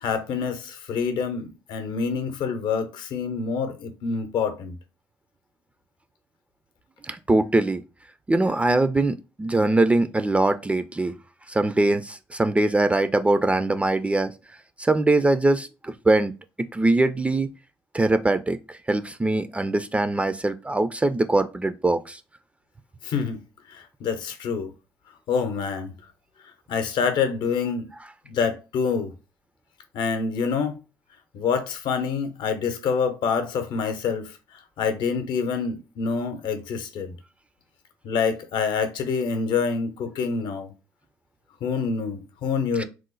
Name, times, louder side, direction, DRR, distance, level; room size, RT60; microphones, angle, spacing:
voice 1, 0.0-4.8 23.0-23.4 23.7-24.7 25.3-25.9 26.7-27.9 28.3-29.1 29.9-30.8 31.3-37.1 38.0-40.7 41.6-42.8, left 5 dB, 65° left, 0.7 m, -26 dB
voice 2, 7.1-7.8 8.3-11.1 11.5-14.3 14.8-16.3 16.6-17.5 17.9-22.2 42.8-42.9, right 2 dB, 15° right, 0.3 m, -22 dB
3.0 x 2.0 x 3.8 m
supercardioid pair, 70°, 8 cm